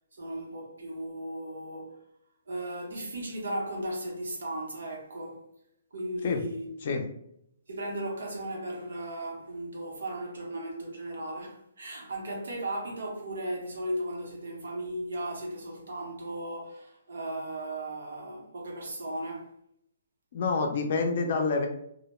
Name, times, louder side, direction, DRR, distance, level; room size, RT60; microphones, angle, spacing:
voice 1, 0.1-2.0 2.5-5.4 5.9-6.7 7.7-19.5, right 1 dB, 90° right, 0.8 m, -36 dB
voice 2, 20.3-21.7, left 4 dB, 35° left, 0.4 m, -27 dB
2.1 x 2.1 x 3.0 m
hypercardioid pair, 175°, 0 cm